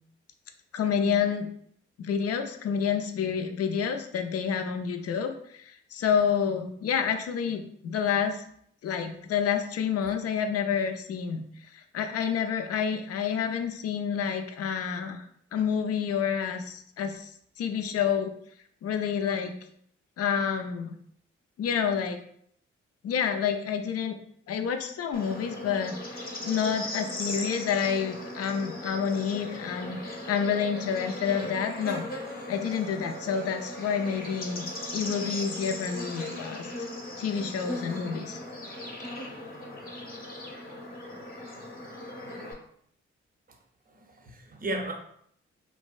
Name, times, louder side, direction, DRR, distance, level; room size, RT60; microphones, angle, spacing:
voice 1, 0.7-1.5 2.0-8.4 8.8-11.4 11.7-15.3 15.5-17.3 17.6-18.3 18.8-19.6 20.2-20.9 21.6-22.2 23.0-24.2 24.5-32.0 32.5-34.7 34.9-36.9 37.2-38.4, left 7 dB, 55° left, 7 dB, 0.4 m, -29 dB
Bird / Insect, 25.1-42.5, left 1 dB, 30° left, 0.8 m, -38 dB
voice 2, 43.9-44.9, right 2 dB, 30° right, 3 dB, 0.6 m, -35 dB
2.6 x 2.1 x 2.3 m, 0.66 s
hypercardioid pair, 40°, 30 cm